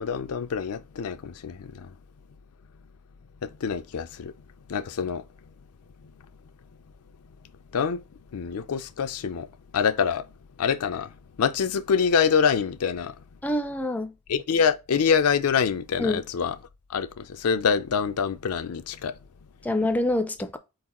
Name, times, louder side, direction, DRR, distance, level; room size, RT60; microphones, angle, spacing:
voice 1, 0.0-1.9 3.4-4.3 4.7-5.2 7.7-8.0 8.3-9.5 9.7-10.2 10.6-11.1 11.4-13.1 14.3-16.6 16.9-19.1, left 6 dB, 80° left, 0.5 m, -25 dB
voice 2, 13.4-14.1 16.0-16.2 19.6-20.6, left 1 dB, 5° left, 0.4 m, -26 dB
4.4 x 3.9 x 2.9 m
head